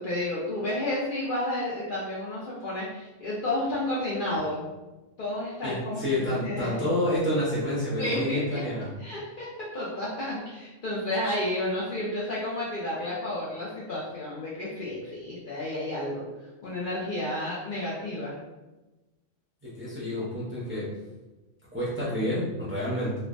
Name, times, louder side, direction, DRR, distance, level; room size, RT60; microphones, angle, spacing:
voice 1, 0.0-4.7 5.2-6.9 8.0-8.6 9.0-16.2 16.6-18.3, left 1 dB, 60° left, -6 dB, 0.6 m, -31 dB
voice 2, 5.6-8.9 19.6-20.9 21.7-23.2, left 1 dB, 15° right, -8 dB, 0.4 m, -29 dB
3.1 x 2.1 x 2.4 m, 1.1 s
omnidirectional pair, 1.3 m